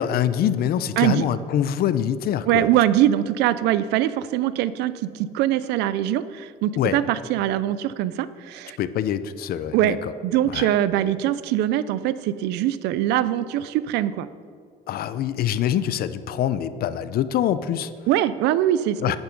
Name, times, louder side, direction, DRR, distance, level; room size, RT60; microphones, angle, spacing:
voice 1, 0.0-2.7 6.7-7.0 8.8-10.1 10.5-10.7 14.9-17.9 19.0-19.2, left 10 dB, 65° left, 14 dB, 0.6 m, -24 dB
voice 2, 2.5-8.8 9.7-10.0 10.2-14.3 18.1-19.2, right 12 dB, 90° right, 15 dB, 0.5 m, -22 dB
10.5 x 8.9 x 5.2 m, 2.2 s
cardioid pair, 110°, 17 cm